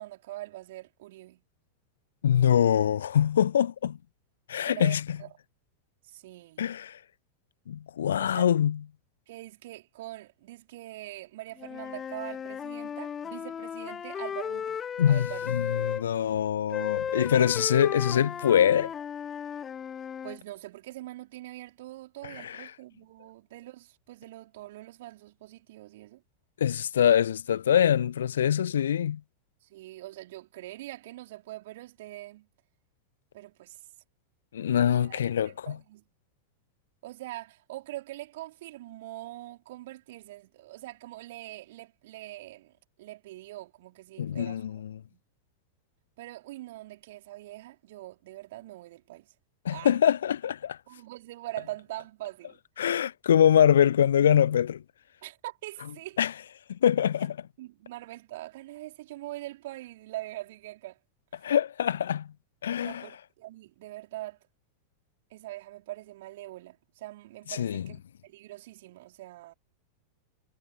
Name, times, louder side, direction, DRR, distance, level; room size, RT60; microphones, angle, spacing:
voice 1, 0.0-1.4 4.6-5.3 6.0-6.6 8.2-8.5 9.3-15.9 20.2-26.2 29.6-32.5 33.3-33.8 34.8-35.2 35.4-36.0 37.0-44.8 45.1-45.2 46.2-49.3 49.7-50.0 50.9-52.6 55.2-56.2 57.6-61.0 62.8-64.4 65.3-69.5, right 16 dB, 55° right, 5.0 m, -43 dB
voice 2, 2.2-4.0 4.5-5.0 6.6-7.0 7.7-8.8 15.0-15.3 15.5-18.9 22.4-22.6 26.6-29.2 34.5-35.8 44.2-44.8 49.6-50.8 52.8-54.8 56.2-56.3 56.7-57.4 61.4-62.3 62.6-63.0 67.5-67.8, left 9 dB, 65° left, 0.6 m, -24 dB
Wind instrument woodwind instrument, 11.6-16.0 16.7-20.4, left 8 dB, 20° left, 1.0 m, -35 dB
figure-of-eight pair, 90°, 0 cm